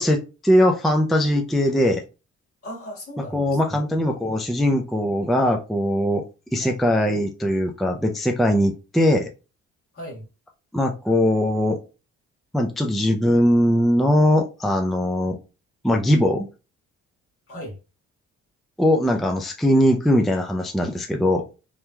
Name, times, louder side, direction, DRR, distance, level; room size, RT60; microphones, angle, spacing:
voice 1, 0.0-2.0 3.3-6.2 6.5-9.3 10.7-11.8 12.5-15.4 15.8-16.5 18.8-21.4, left 1 dB, ahead, 0.4 m, -20 dB
voice 2, 2.6-3.8 4.2-4.6 6.6-6.8 9.9-10.2 17.5-17.8, equal, 45° left, 1.6 m, -38 dB
3.4 x 3.0 x 2.2 m
cardioid pair, 90°, 30 cm